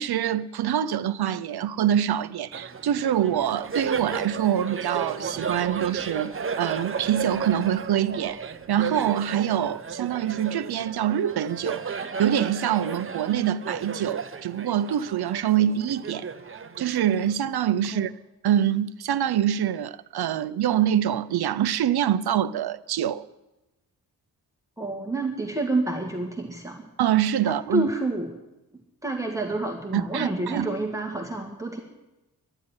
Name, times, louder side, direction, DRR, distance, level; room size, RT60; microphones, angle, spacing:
voice 1, 0.0-16.3 16.8-18.1 18.4-23.2 27.0-27.9 29.9-30.7, right 10 dB, 90° right, 0.6 m, -25 dB
Laughter, 2.5-17.5, right 5 dB, 35° right, 0.8 m, -34 dB
voice 2, 24.8-26.9 27.4-28.3 29.0-31.8, right 2 dB, 10° right, 1.8 m, -28 dB
12.0 x 9.9 x 9.7 m
wide cardioid pair, 130°, 37 cm